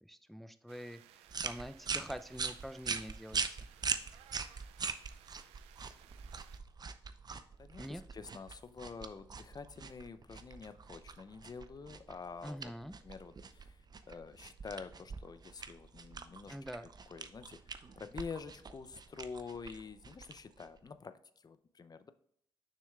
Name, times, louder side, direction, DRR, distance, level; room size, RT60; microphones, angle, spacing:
voice 1, 0.0-3.4 7.8-8.0 12.4-12.9 16.5-16.9, equal, ahead, 10 dB, 0.5 m, -45 dB
sound 1, 0.7-6.6, right 11 dB, 90° right, 0.4 m, -61 dB
sound 2, 1.3-20.9, right 5 dB, 45° right, 0.6 m, -43 dB
voice 2, 7.6-12.7 13.0-16.5 17.1-17.6 18.0-22.1, left 5 dB, 40° left, 12 dB, 0.6 m, -47 dB
6.8 x 6.2 x 2.4 m, 0.70 s
supercardioid pair, 45°, 10 cm